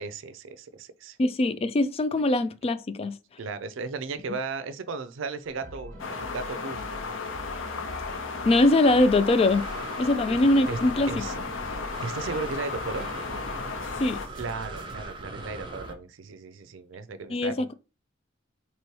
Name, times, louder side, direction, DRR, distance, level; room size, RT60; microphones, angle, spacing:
voice 1, 0.0-1.2 3.4-7.1 10.7-10.8 11.1-13.1 14.4-17.7, right 4 dB, 85° right, 0.5 m, -36 dB
voice 2, 1.2-3.2 8.5-9.7 10.0-11.2 14.0-14.2 17.3-17.7, left 2 dB, 30° left, 0.3 m, -22 dB
sound 1, 5.4-15.0, right 1 dB, 45° right, 1.3 m, -44 dB
sound 2, 6.0-14.3, left 4 dB, 85° left, 0.6 m, -35 dB
Breathing, 8.8-15.9, right 2 dB, 25° right, 0.6 m, -40 dB
3.0 x 3.0 x 4.5 m
head